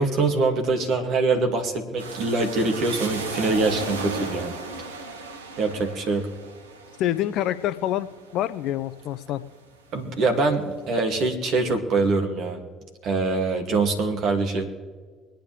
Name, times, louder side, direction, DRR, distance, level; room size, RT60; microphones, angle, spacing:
voice 1, 0.0-4.5 5.6-6.3 9.9-12.6 13.0-14.7, right 3 dB, 60° right, 4 dB, 2.4 m, -24 dB
sound 1, 2.0-9.6 10.1-10.9, right 3 dB, 90° right, 1.1 m, -35 dB
voice 2, 7.0-8.1 8.3-9.4, left 12 dB, 65° left, 13 dB, 0.7 m, -26 dB
24.5 x 9.1 x 3.4 m, 1.5 s
hypercardioid pair, 55°, 0 cm